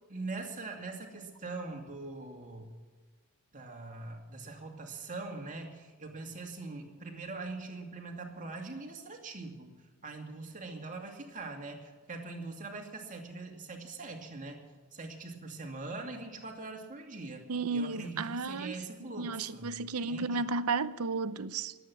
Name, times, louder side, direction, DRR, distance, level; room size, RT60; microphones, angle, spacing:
voice 1, 0.1-2.7 3.5-9.8 10.0-14.6 14.9-19.7 20.0-20.4, right 3 dB, 35° right, 2.5 m, -42 dB
voice 2, 17.5-18.8 19.2-21.7, right 4 dB, 80° right, 0.7 m, -33 dB
21.5 x 9.0 x 6.1 m
head